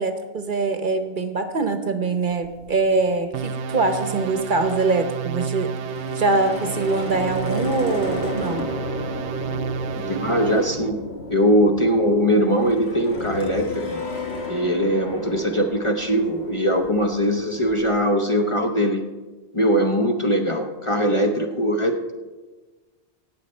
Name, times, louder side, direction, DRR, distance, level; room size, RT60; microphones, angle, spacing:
voice 1, 0.0-5.7 6.1-8.7, right 3 dB, 50° right, 8 dB, 0.9 m, -23 dB
sound 1, 2.3-4.9 5.2-5.4 5.7-17.9, left 2 dB, 70° left, 1.6 m, -34 dB
sound 2, 3.3-10.9, right 6 dB, 90° right, 0.9 m, -30 dB
voice 2, 10.0-11.0 11.3-14.0 14.5-19.0 19.5-22.1, equal, 30° left, 3 dB, 0.7 m, -21 dB
17.5 x 7.1 x 4.3 m, 1.3 s
omnidirectional pair, 1.2 m